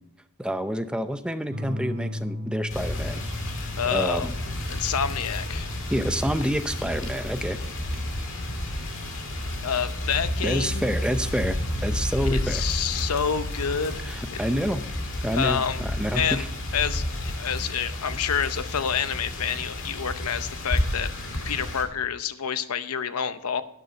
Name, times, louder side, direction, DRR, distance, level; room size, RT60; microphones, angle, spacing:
voice 1, 0.4-3.2 3.9-4.3 5.9-7.6 10.4-12.6 14.0-14.8 15.2-16.5, equal, 5° right, 9 dB, 0.6 m, -28 dB
sound 1, 1.5-10.6 12.0-12.6, left 1 dB, 50° right, 1.2 m, -39 dB
sound 2, 2.7-21.8, left 1 dB, 60° left, 2.1 m, -31 dB
voice 2, 3.8-4.3 4.7-5.7 9.6-10.9 12.3-14.0 14.3-14.4 15.3-15.8 16.1-16.4 16.7-21.1 21.5-23.6, left 7 dB, 90° left, 12 dB, 0.7 m, -28 dB
12.5 x 9.4 x 4.4 m, 0.78 s
head